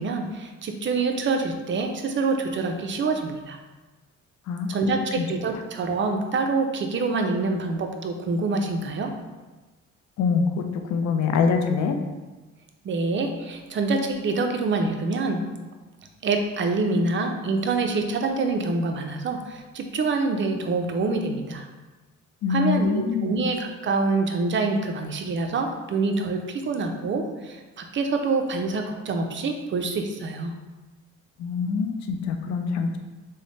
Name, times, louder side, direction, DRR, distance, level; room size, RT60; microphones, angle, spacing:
voice 1, 0.0-3.6 4.7-9.1 12.8-15.4 16.2-21.7 22.5-30.5, right 3 dB, 40° right, 5 dB, 0.4 m, -26 dB
voice 2, 10.2-12.0 22.4-23.4 31.4-33.0, left 5 dB, 65° left, 5 dB, 0.5 m, -24 dB
3.3 x 2.1 x 3.8 m, 1.2 s
cardioid pair, 90°, 30 cm